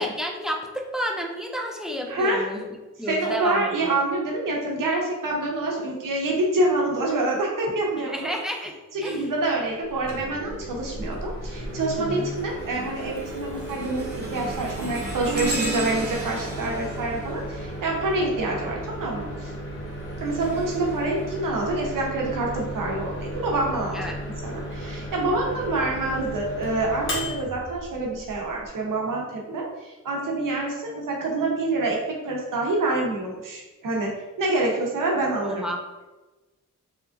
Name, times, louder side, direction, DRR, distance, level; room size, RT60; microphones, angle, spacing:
voice 1, 0.0-2.7 3.0-4.0 8.1-8.7 9.0-9.3 12.0-12.3 23.9-24.1 35.4-35.8, equal, ahead, 1 dB, 0.4 m, -30 dB
voice 2, 2.1-2.5 3.1-8.3 8.9-19.5 20.2-24.0 24.4-35.6, right 2 dB, 85° right, -1 dB, 0.8 m, -26 dB
Microwave oven, 9.9-28.7, equal, 40° left, 0.8 m, -35 dB
Industrial Metal Trash, 10.8-11.2 11.7-18.5 19.7-21.9 22.6-22.8 23.7-23.8, right 2 dB, 30° right, 0.8 m, -36 dB
3.4 x 2.9 x 2.5 m, 1.1 s
wide cardioid pair, 125°, 32 cm